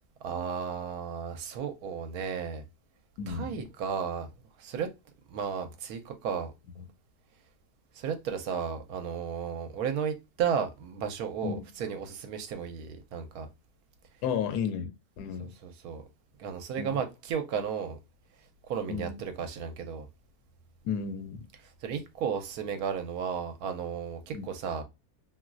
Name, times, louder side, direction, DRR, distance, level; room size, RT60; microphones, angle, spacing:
voice 1, 0.2-2.6 3.3-4.3 4.6-4.9 5.3-6.5 8.0-13.5 15.4-16.0 16.4-18.0 18.7-20.1 21.8-24.8, right 7 dB, 75° right, 1.1 m, -34 dB
voice 2, 3.2-3.6 6.8-6.9 11.4-11.6 14.2-15.5 16.8-17.0 18.9-19.2 20.8-21.4 24.3-24.5, left 7 dB, 90° left, 1.1 m, -33 dB
3.0 x 2.8 x 2.4 m
omnidirectional pair, 1.6 m